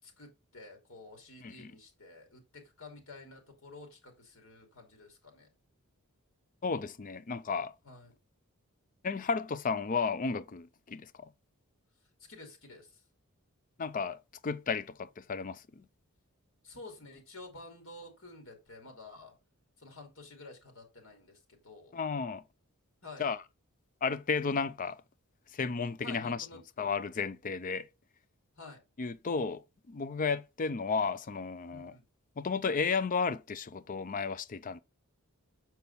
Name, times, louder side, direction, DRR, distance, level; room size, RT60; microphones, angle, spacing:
voice 1, 0.0-5.5 7.8-8.1 12.0-13.0 16.6-19.3 19.8-22.0 23.0-23.2 26.0-27.0 28.6-28.8 31.7-32.0, left 3 dB, 60° left, 2.7 m, -51 dB
voice 2, 6.6-7.7 9.0-11.3 13.8-15.8 21.9-22.4 23.2-23.4 24.0-25.0 25.5-26.4 26.8-27.9 29.0-32.0 32.4-34.8, left 5 dB, 35° left, 0.4 m, -33 dB
6.9 x 4.6 x 4.1 m
head